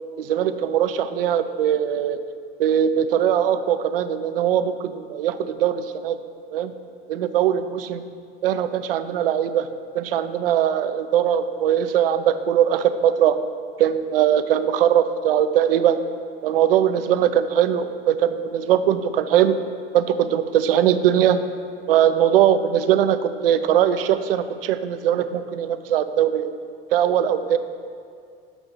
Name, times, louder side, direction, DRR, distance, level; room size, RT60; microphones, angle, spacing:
voice 1, 0.2-2.2 2.6-6.2 6.5-6.7 7.1-8.0 8.4-9.7 9.9-13.4 13.8-16.0 16.4-19.6 19.9-21.4 21.9-26.5 26.9-27.6, right 10 dB, 70° right, 11 dB, 0.5 m, -20 dB
7.0 x 6.1 x 5.5 m, 2.3 s
figure-of-eight pair, 65°, 30 cm